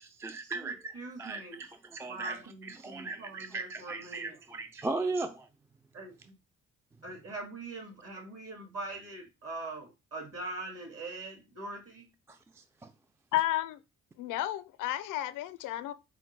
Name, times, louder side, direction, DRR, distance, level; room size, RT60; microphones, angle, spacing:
voice 1, 0.0-0.9 1.2-5.5 12.3-12.9, right 3 dB, 10° right, 0.3 m, -38 dB
voice 2, 0.6-1.6 2.0-4.4 5.9-6.3 7.0-12.1, right 2 dB, 50° right, 2.1 m, -42 dB
voice 3, 13.3-13.8 14.2-15.9, left 14 dB, 85° left, 0.5 m, -32 dB
4.8 x 2.2 x 4.5 m
cardioid pair, 90°, 30 cm